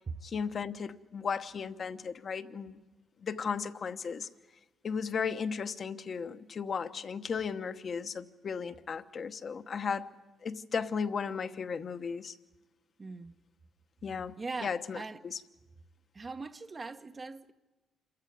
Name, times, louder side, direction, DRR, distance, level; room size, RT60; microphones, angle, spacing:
voice 1, 0.2-2.8 3.2-4.3 4.8-10.1 10.4-12.3 14.0-14.3 14.6-15.4, left 6 dB, 50° left, 1.0 m, -35 dB
voice 2, 13.0-13.4 14.4-15.2 16.1-17.5, right 3 dB, 30° right, 0.8 m, -40 dB
27.0 x 14.5 x 9.4 m
cardioid pair, 90°, 0 cm